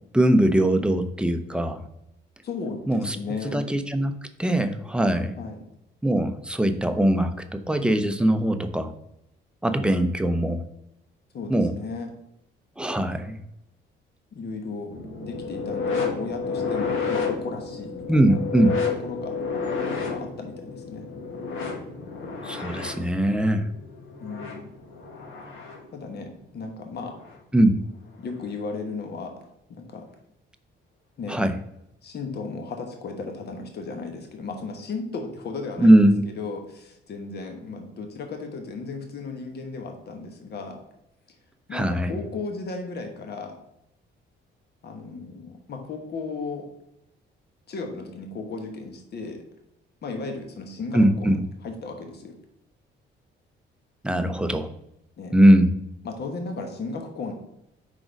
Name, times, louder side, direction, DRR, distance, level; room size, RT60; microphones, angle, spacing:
voice 1, 0.1-1.8 2.9-3.2 3.4-5.3 6.0-8.9 9.6-10.6 11.5-11.8 12.8-13.4 18.1-18.8 22.4-23.7 27.5-27.8 31.3-31.6 35.8-36.2 41.7-42.2 50.9-51.4 54.0-54.7 55.3-55.7, right 1 dB, 5° right, 8 dB, 0.6 m, -21 dB
voice 2, 2.4-3.7 5.4-5.5 11.3-12.1 14.3-14.9 15.2-18.4 19.0-19.4 20.1-21.1 24.2-24.7 25.9-27.1 28.2-29.3 29.7-30.1 31.2-31.4 32.0-40.8 41.7-43.6 44.8-46.7 47.7-49.4 50.0-51.4 51.6-52.4 55.2-55.3 56.0-57.3, left 4 dB, 55° left, 4 dB, 1.2 m, -35 dB
sound 1, 14.9-25.9 27.1-27.4 28.3-28.4, left 5 dB, 85° left, 1.3 m, -31 dB
5.0 x 3.8 x 5.0 m, 0.82 s
cardioid pair, 90°, 20 cm